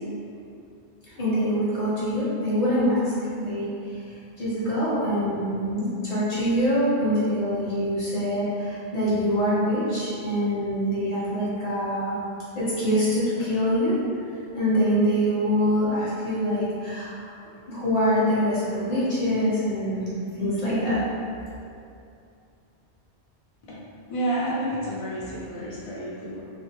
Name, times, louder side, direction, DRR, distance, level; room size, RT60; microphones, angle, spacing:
voice 1, 1.1-3.7 4.1-12.2 12.5-14.0 14.5-17.3 17.7-20.1 20.4-21.1, equal, 35° left, -11 dB, 1.0 m, -24 dB
voice 2, 24.1-26.4, right 1 dB, 60° left, -7 dB, 0.3 m, -30 dB
3.3 x 2.1 x 2.8 m, 2.6 s
omnidirectional pair, 1.2 m